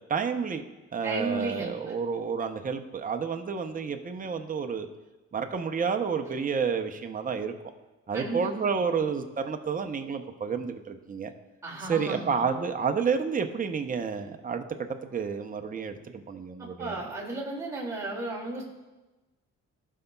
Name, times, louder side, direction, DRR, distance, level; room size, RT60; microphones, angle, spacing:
voice 1, 0.1-0.6 0.9-4.9 5.3-7.5 8.1-11.3 11.9-17.0, right 6 dB, 30° right, 6 dB, 0.7 m, -30 dB
voice 2, 1.0-1.9 8.1-9.0 11.6-12.5 16.6-18.6, right 2 dB, 10° right, -6 dB, 2.5 m, -35 dB
16.0 x 5.5 x 2.3 m, 1.1 s
cardioid pair, 90°, 30 cm